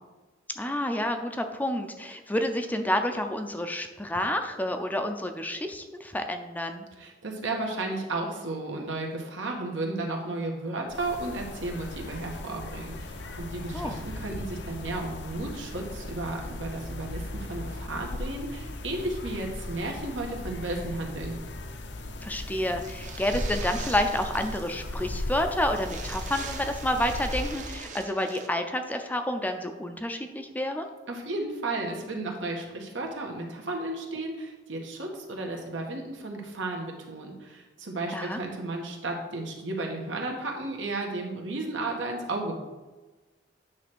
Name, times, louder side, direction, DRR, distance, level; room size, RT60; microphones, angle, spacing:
voice 1, 0.6-6.9 13.7-14.0 22.2-30.9 38.1-38.4, left 1 dB, 10° left, 6 dB, 0.5 m, -29 dB
voice 2, 7.0-21.4 31.1-42.6, right 2 dB, 85° right, 0 dB, 1.5 m, -33 dB
sound 1, 10.9-27.8, left 1 dB, 65° left, 0.7 m, -37 dB
sound 2, 22.8-24.7 25.0-25.1 25.3-25.4 25.7-28.5, right 5 dB, 40° right, 0.8 m, -42 dB
9.4 x 3.3 x 6.1 m, 1.2 s
head